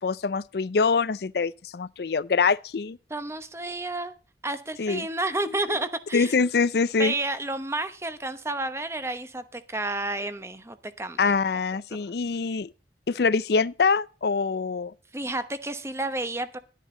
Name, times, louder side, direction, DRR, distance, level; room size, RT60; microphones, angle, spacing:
voice 1, 0.0-3.0 4.8-5.1 6.1-7.1 11.2-12.7 13.1-14.9, left 4 dB, 65° left, 0.5 m, -24 dB
voice 2, 3.1-4.1 4.4-6.3 7.0-11.3 11.9-12.1 15.1-16.6, right 2 dB, 15° right, 0.9 m, -31 dB
11.5 x 10.0 x 3.8 m
head